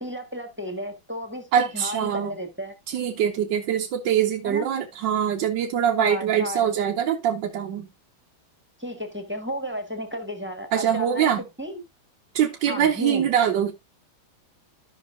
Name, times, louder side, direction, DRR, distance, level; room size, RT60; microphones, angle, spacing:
voice 1, 0.0-2.7 4.4-4.7 6.0-6.7 8.8-11.3 11.6-11.8 12.7-13.3, equal, 5° right, 1.0 m, -33 dB
voice 2, 1.5-2.3 2.9-7.9 10.7-11.4 12.3-13.7, right 9 dB, 65° right, 1.4 m, -23 dB
14.0 x 5.7 x 2.5 m
omnidirectional pair, 2.2 m